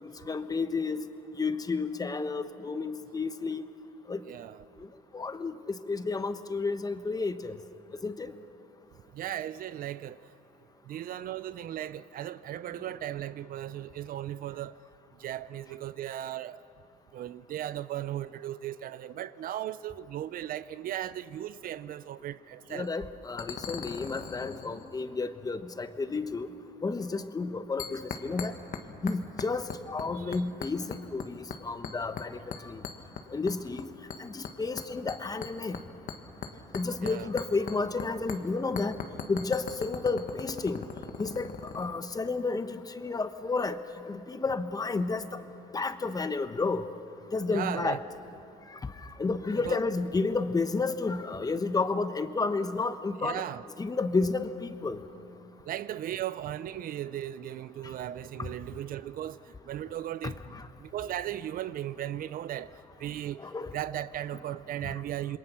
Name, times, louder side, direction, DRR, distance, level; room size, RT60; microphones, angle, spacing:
voice 1, 0.0-1.1 1.4-3.6 4.1-4.2 4.8-4.9 5.1-7.6 8.0-8.3 22.7-26.5 26.8-28.5 29.0-32.8 33.3-33.9 34.2-35.8 36.7-39.0 39.3-40.8 41.2-41.5 41.7-43.8 44.0-45.4 45.7-46.9 47.3-48.0 48.7-53.4 53.8-55.0 60.2-60.6 63.4-63.7 64.8-64.9, left 3 dB, 20° left, 1.0 m, -31 dB
voice 2, 4.3-4.6 9.1-10.2 10.8-14.8 15.2-16.6 17.1-22.9 30.1-30.3 37.0-37.3 47.5-48.0 49.5-49.8 53.2-53.6 55.6-60.5 60.8-63.4 63.7-65.4, right 12 dB, 55° right, 0.5 m, -37 dB
sound 1, 22.7-22.9 23.4-25.0 27.8-28.8 29.1-30.1 30.3-31.3 31.5-32.3 32.5-33.8 34.1-38.0 38.3-38.4 38.8-41.9, left 7 dB, 55° left, 1.6 m, -39 dB
27.0 x 22.0 x 6.0 m
cardioid pair, 110°, 17 cm